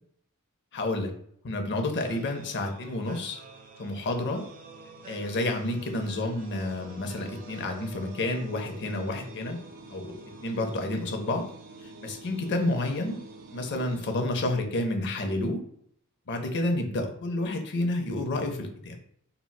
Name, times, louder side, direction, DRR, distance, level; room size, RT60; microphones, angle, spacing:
voice 1, 0.7-1.1 1.4-3.4 3.8-4.4 5.1-9.6 9.9-10.1 10.4-11.5 11.8-13.2 13.5-15.6 16.3-19.0, left 2 dB, 50° left, 4 dB, 0.5 m, -30 dB
sound 1, 2.0-15.0, right 2 dB, 40° right, 0.3 m, -47 dB
3.9 x 2.1 x 2.2 m, 0.65 s
head